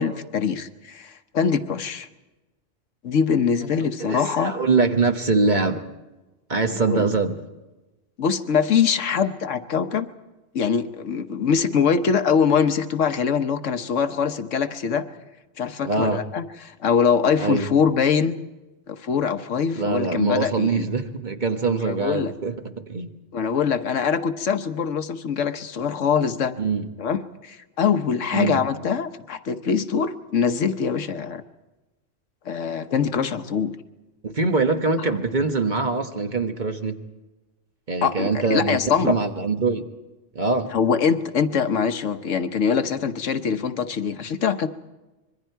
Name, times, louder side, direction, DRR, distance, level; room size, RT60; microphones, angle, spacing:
voice 1, 0.0-2.1 3.0-4.5 6.9-7.1 8.2-10.1 10.5-15.1 15.6-18.4 18.9-20.9 21.9-22.3 23.3-26.5 27.0-31.4 32.5-33.8 38.0-39.1 40.7-44.7, left 6 dB, 75° left, 9 dB, 1.2 m, -23 dB
voice 2, 4.0-5.9 6.5-7.4 15.8-16.2 17.4-17.7 19.7-23.1 26.6-26.9 28.3-28.6 34.2-37.0 37.9-39.8 40.3-40.7, right 4 dB, 40° right, 5 dB, 1.3 m, -23 dB
25.5 x 22.5 x 4.6 m, 1.1 s
omnidirectional pair, 1.3 m